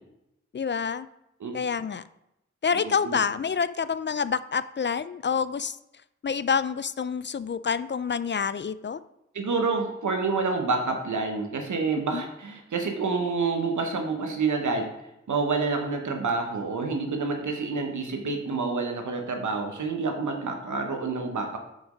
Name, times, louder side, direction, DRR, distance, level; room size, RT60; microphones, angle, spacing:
voice 1, 0.5-1.1 1.5-2.0 2.6-5.8 6.2-9.0 12.1-12.2, left 6 dB, 40° left, 15 dB, 0.4 m, -27 dB
voice 2, 2.7-3.2 9.3-14.9 15.3-21.6, right 4 dB, 90° right, 4 dB, 1.1 m, -28 dB
6.0 x 5.2 x 5.1 m, 0.85 s
cardioid pair, 50°, 29 cm